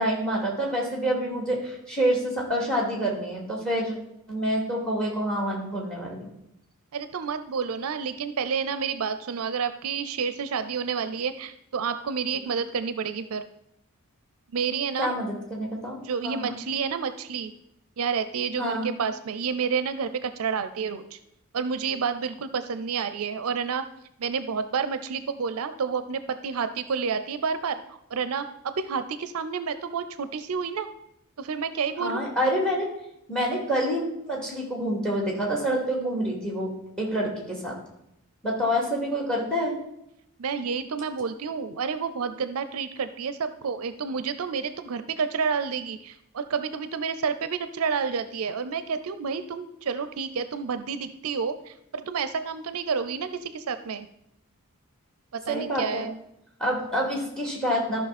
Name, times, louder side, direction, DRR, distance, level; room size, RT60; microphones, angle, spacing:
voice 1, 0.0-4.0 4.3-6.3 15.0-16.6 18.6-18.9 32.0-32.9 33.3-36.7 37.0-37.7 38.4-39.7 55.5-56.1 56.6-58.1, equal, 5° left, -1 dB, 2.5 m, -27 dB
voice 2, 6.9-13.4 14.5-15.1 16.0-17.5 18.0-21.2 21.5-23.8 24.2-30.9 31.4-32.2 40.4-54.1 55.3-56.1, right 6 dB, 70° right, 11 dB, 0.5 m, -29 dB
13.5 x 5.7 x 4.2 m, 0.80 s
head